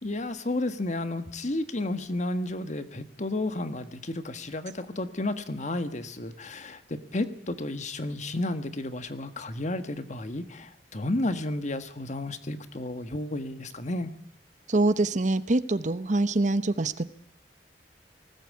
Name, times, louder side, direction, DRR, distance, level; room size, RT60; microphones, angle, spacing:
voice 1, 0.0-14.1, left 2 dB, 45° left, 11 dB, 1.4 m, -32 dB
voice 2, 14.7-17.0, right 2 dB, 45° right, 14 dB, 0.9 m, -24 dB
19.5 x 16.5 x 8.5 m, 0.69 s
head